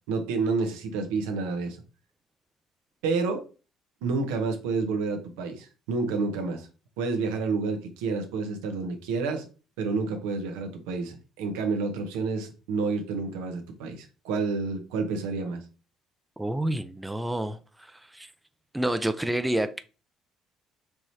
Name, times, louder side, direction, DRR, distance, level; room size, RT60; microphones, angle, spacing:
voice 1, 0.1-1.8 3.0-3.4 4.0-6.7 7.0-9.5 9.8-15.6, right 4 dB, 90° right, 0.8 m, -29 dB
voice 2, 16.4-18.3 18.7-19.8, right 1 dB, 10° right, 0.4 m, -29 dB
4.7 x 3.1 x 2.7 m
supercardioid pair, 80°, 0 cm